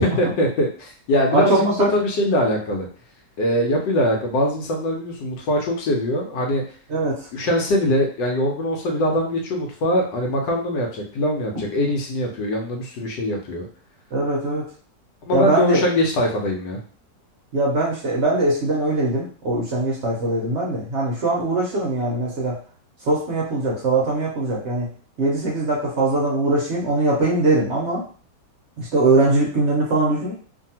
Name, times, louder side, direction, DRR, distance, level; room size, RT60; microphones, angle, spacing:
voice 1, 0.0-1.6 1.9-2.9 3.4-6.6 7.3-13.7 15.3-16.8, left 1 dB, 85° left, 0 dB, 1.3 m, -22 dB
voice 2, 1.3-1.9 6.9-7.3 14.1-14.7 15.3-15.9 17.5-22.6 23.0-24.9 25.2-28.0 28.8-30.3, right 2 dB, 60° right, -3 dB, 0.7 m, -21 dB
2.7 x 2.6 x 2.7 m, 0.42 s
omnidirectional pair, 1.9 m